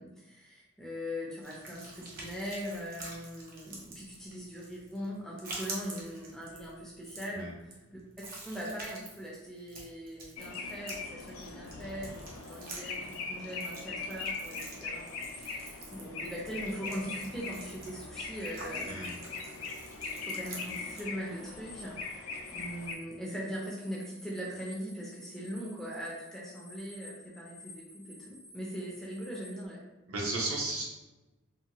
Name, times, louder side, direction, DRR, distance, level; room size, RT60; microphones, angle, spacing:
voice 1, 0.0-8.0 8.4-19.0 20.2-29.8, equal, ahead, -4 dB, 0.4 m, -41 dB
sound 1, 1.4-21.0, right 2 dB, 40° right, 0.6 m, -47 dB
Mocking Bird, 10.4-22.9, left 4 dB, 75° left, 0.4 m, -41 dB
sound 2, 14.9-16.4 16.7-19.5 19.8-29.6, left 2 dB, 55° left, 0.7 m, -54 dB
voice 2, 30.1-30.8, right 2 dB, 80° right, -3 dB, 0.8 m, -34 dB
2.7 x 2.2 x 2.8 m, 1.1 s
head